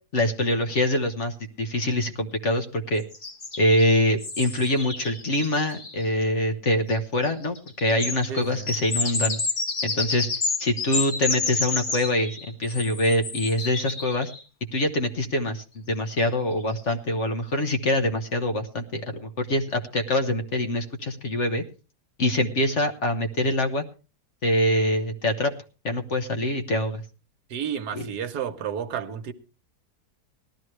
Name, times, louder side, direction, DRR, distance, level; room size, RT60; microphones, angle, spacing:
voice 1, 0.1-3.0 3.6-9.4 9.8-10.3 10.6-14.3 14.7-21.6 22.2-23.8 24.4-25.5 25.8-27.0 27.9-28.1, left 1 dB, 50° left, 6 dB, 1.4 m, -24 dB
sound 1, 3.1-6.0 6.9-7.0 7.2-14.4 16.2-16.3 16.7-16.9, left 3 dB, 35° left, 1.4 m, -30 dB
voice 2, 8.3-8.7 27.5-29.3, right 8 dB, 75° right, 10 dB, 1.5 m, -31 dB
18.0 x 12.5 x 3.2 m, 0.33 s
omnidirectional pair, 1.8 m